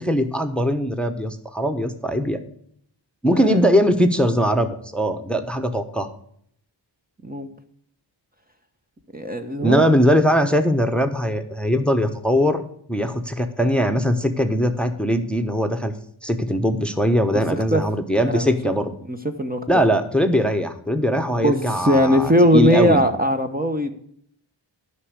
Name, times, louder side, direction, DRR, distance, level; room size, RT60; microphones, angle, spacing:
voice 1, 0.0-2.4 3.2-6.1 9.6-12.6 12.9-15.9 16.2-18.9 19.7-23.0, equal, ahead, 7 dB, 1.1 m, -20 dB
voice 2, 9.1-9.8 17.5-17.8 18.3-18.7 19.1-19.7 21.4-23.9, equal, 20° right, 4 dB, 1.0 m, -20 dB
9.8 x 5.9 x 8.1 m, 0.65 s
cardioid pair, 45°, 47 cm